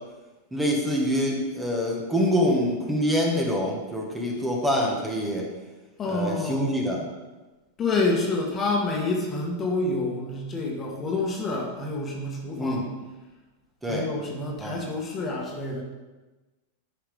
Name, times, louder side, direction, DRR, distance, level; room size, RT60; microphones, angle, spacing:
voice 1, 0.5-5.5 6.1-7.0 12.6-12.8 13.8-14.1 14.6-14.9, equal, 10° right, -1 dB, 1.6 m, -25 dB
voice 2, 6.0-6.7 7.8-12.8 13.9-15.8, left 2 dB, 25° left, -1 dB, 1.6 m, -28 dB
8.4 x 5.8 x 3.6 m, 1.2 s
hypercardioid pair, 110°, 0 cm